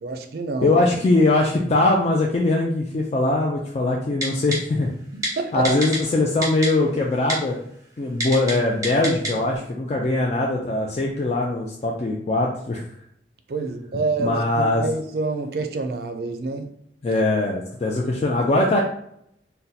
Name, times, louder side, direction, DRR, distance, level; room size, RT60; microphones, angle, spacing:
voice 1, 0.0-0.8 1.6-1.8 5.1-5.7 13.5-16.7, right 3 dB, 60° right, 6 dB, 0.4 m, -27 dB
voice 2, 0.6-4.9 5.5-7.6 8.0-12.8 14.2-14.8 17.0-18.8, left 2 dB, 35° left, -1 dB, 0.3 m, -21 dB
Typing, 4.2-4.6 5.2-5.3 5.6-6.0 6.4-6.7 7.3-7.4 8.2-8.5 8.8-9.3 9.7-9.8, right 1 dB, 20° right, 0.7 m, -25 dB
2.7 x 2.1 x 3.9 m, 0.72 s
head